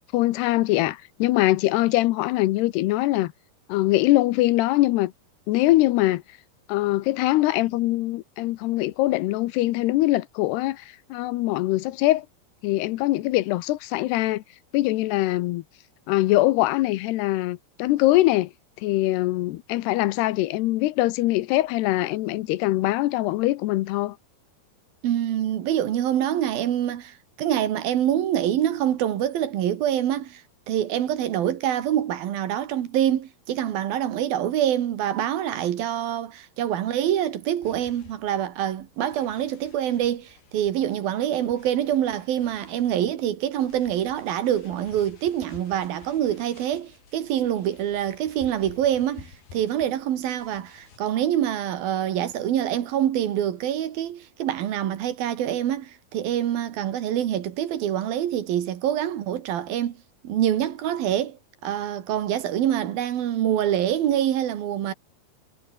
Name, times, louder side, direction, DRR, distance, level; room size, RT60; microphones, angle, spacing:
voice 1, 0.1-3.3 3.7-5.1 5.5-6.2 6.7-12.3 12.6-14.4 14.7-15.6 16.1-18.5 18.8-24.2, left 17 dB, 80° left, 2.9 m, -22 dB
voice 2, 25.0-60.0 60.2-64.9, right 11 dB, 65° right, 3.3 m, -25 dB
sound 1, 37.6-51.0, left 6 dB, 65° left, 6.2 m, -52 dB
omnidirectional pair, 4.7 m